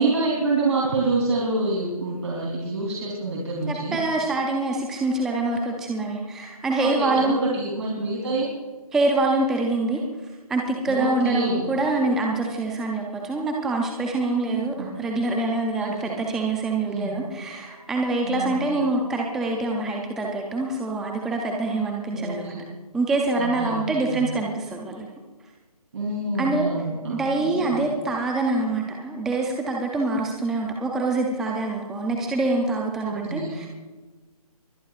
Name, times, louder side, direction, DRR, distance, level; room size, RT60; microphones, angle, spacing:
voice 1, 0.0-4.0 6.8-8.5 10.9-11.6 14.4-14.9 15.8-16.1 16.8-17.2 18.2-18.8 22.1-22.6 23.4-24.3 25.9-27.9 33.0-33.6, right 3 dB, 50° right, -3 dB, 3.5 m, -27 dB
voice 2, 3.7-7.4 8.9-10.0 10.5-22.7 22.9-25.1 26.4-26.7 27.1-33.7, right 2 dB, ahead, 0 dB, 0.5 m, -25 dB
23.5 x 17.0 x 2.5 m, 1.3 s
figure-of-eight pair, 150°, 20 cm